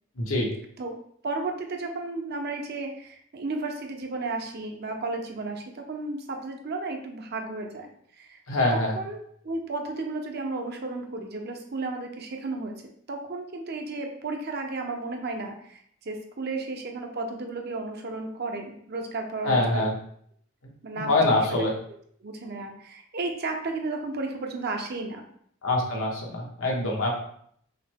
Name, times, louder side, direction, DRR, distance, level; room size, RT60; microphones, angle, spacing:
voice 1, 0.2-0.5 8.5-8.9 19.4-19.9 21.0-21.7 25.6-27.2, left 2 dB, 90° left, -1 dB, 1.1 m, -24 dB
voice 2, 1.2-8.4 8.7-12.7 13.1-19.9 20.8-21.5 22.2-25.2, right 3 dB, 50° right, 3 dB, 0.6 m, -33 dB
5.7 x 2.1 x 3.6 m, 0.65 s
head